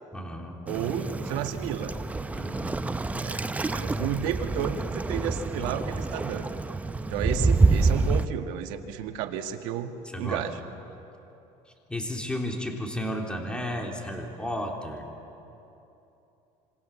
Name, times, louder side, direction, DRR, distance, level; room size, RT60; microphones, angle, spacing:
voice 1, 0.1-0.6 2.3-2.9 5.6-5.7 10.1-10.4 11.9-15.0, equal, 10° left, 1 dB, 3.5 m, -33 dB
Waves surf, 0.7-8.3, right 3 dB, 10° right, 0.7 m, -27 dB
voice 2, 0.7-1.9 3.2-6.5 7.1-9.9 10.2-10.6, right 9 dB, 80° right, 5 dB, 1.8 m, -32 dB
26.5 x 25.5 x 7.2 m, 2.9 s
cardioid pair, 120°, 13 cm